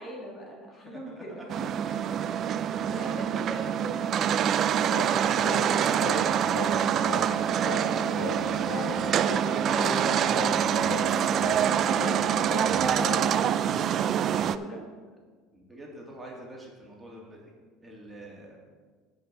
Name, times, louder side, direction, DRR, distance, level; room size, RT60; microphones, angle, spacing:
voice 1, 0.0-1.5 2.8-7.3 7.6-13.4 14.1-14.8, equal, 35° left, -1 dB, 2.0 m, -42 dB
voice 2, 0.8-1.4 15.5-17.5 17.8-18.6, right 1 dB, 15° right, -2 dB, 2.7 m, -46 dB
sound 1, 1.5-14.6, right 9 dB, 45° right, 0.4 m, -26 dB
Singing, 4.9-13.5, left 2 dB, 75° left, 1.6 m, -36 dB
15.5 x 5.6 x 4.2 m, 1.5 s
supercardioid pair, 95°, 0 cm